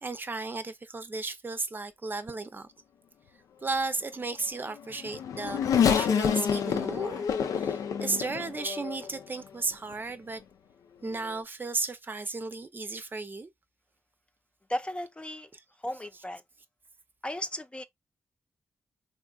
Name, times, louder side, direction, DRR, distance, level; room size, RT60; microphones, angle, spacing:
voice 1, 0.0-2.7 3.6-7.3 7.5-10.4 11.0-13.5, right 3 dB, 35° right, 0.5 m, -34 dB
Race car auto racing / Accelerating revving vroom, 4.7-9.2 9.9-10.0 11.2-11.3, left 7 dB, 85° left, 0.4 m, -28 dB
voice 2, 14.7-15.5 15.8-16.4 17.2-17.8, left 1 dB, 20° left, 0.4 m, -35 dB
3.6 x 2.5 x 2.3 m
cardioid pair, 55°, 6 cm